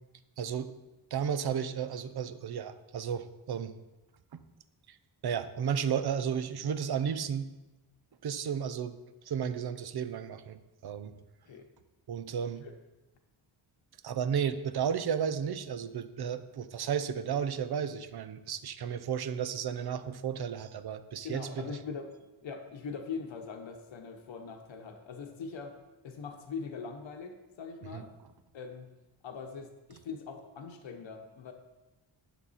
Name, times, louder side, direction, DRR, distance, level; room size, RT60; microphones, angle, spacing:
voice 1, 0.4-0.7 1.1-3.7 4.3-4.4 5.2-7.5 8.2-9.0 9.3-11.1 12.1-12.7 14.0-21.7 27.9-28.0, right 7 dB, 55° right, 11 dB, 0.7 m, -33 dB
voice 2, 21.2-22.1 22.4-25.7 26.0-28.1 28.5-28.9 29.2-31.5, left 5 dB, 75° left, 4 dB, 1.1 m, -41 dB
10.5 x 7.3 x 4.2 m, 1.1 s
wide cardioid pair, 130°, 46 cm